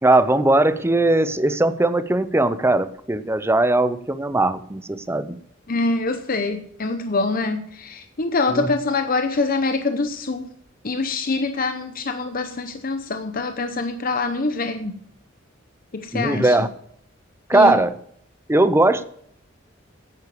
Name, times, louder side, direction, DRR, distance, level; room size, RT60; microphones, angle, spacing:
voice 1, 0.0-5.4 8.5-8.7 16.1-16.7 17.5-17.9 18.5-19.0, right 2 dB, 15° right, 12 dB, 0.7 m, -19 dB
voice 2, 5.7-10.5 10.8-15.0 15.9-16.6 17.5-17.8, left 3 dB, 45° left, 8 dB, 0.8 m, -25 dB
9.9 x 9.7 x 6.9 m, 0.67 s
head